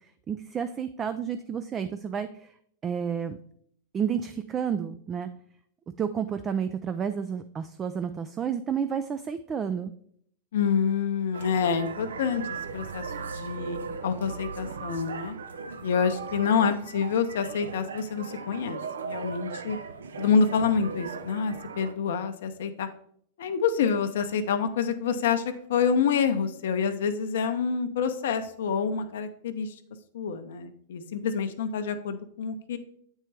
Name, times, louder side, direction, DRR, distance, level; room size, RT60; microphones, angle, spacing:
voice 1, 0.3-2.5 2.8-3.4 3.9-5.3 6.0-9.9, right 7 dB, 25° right, 10 dB, 0.3 m, -30 dB
voice 2, 10.5-15.4 15.8-19.8 20.2-22.9 23.4-25.4 25.7-29.7 30.1-32.8, left 6 dB, 65° left, 9 dB, 0.6 m, -27 dB
sound 1, 11.3-21.9, right 5 dB, 80° right, 0.5 m, -38 dB
8.2 x 4.4 x 3.3 m, 0.65 s
hypercardioid pair, 100°, 0 cm